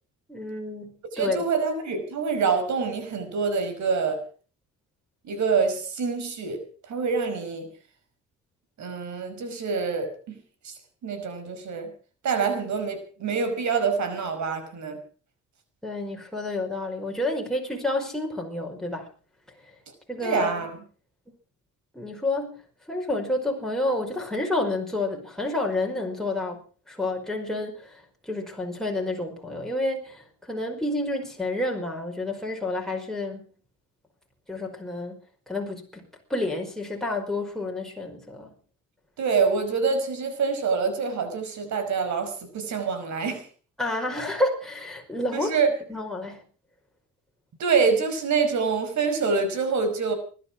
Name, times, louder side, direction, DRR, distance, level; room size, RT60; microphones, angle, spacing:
voice 1, 0.3-1.4 15.8-19.1 20.1-20.7 21.9-22.6 22.9-26.6 26.9-33.5 34.5-35.2 35.5-38.5 43.8-45.5 45.9-46.4, left 2 dB, ahead, 0 dB, 5.2 m, -29 dB
voice 2, 1.1-4.2 5.2-6.6 6.9-7.7 8.8-10.1 10.6-10.7 11.0-11.9 12.2-15.0 20.2-20.7 39.2-43.4 45.3-45.7 47.6-50.1, right 5 dB, 70° right, 9 dB, 5.4 m, -26 dB
20.0 x 12.0 x 6.1 m, 0.41 s
cardioid pair, 90°, 30 cm